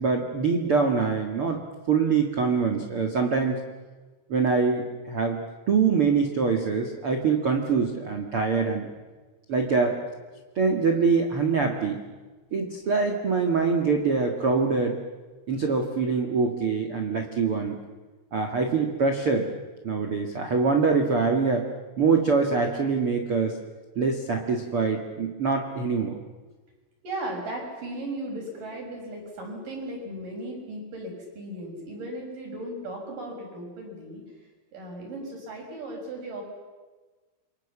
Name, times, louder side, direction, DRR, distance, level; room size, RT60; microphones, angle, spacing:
voice 1, 0.0-1.6 1.9-3.6 4.3-8.9 9.5-10.0 10.5-12.0 12.5-15.0 15.5-17.8 18.3-19.4 19.8-21.7 22.0-23.5 23.9-26.2, right 5 dB, 70° right, 3 dB, 1.2 m, -24 dB
voice 2, 27.0-34.2 34.7-36.4, right 1 dB, 40° right, 1 dB, 7.6 m, -36 dB
29.0 x 24.0 x 7.3 m, 1.3 s
omnidirectional pair, 5.9 m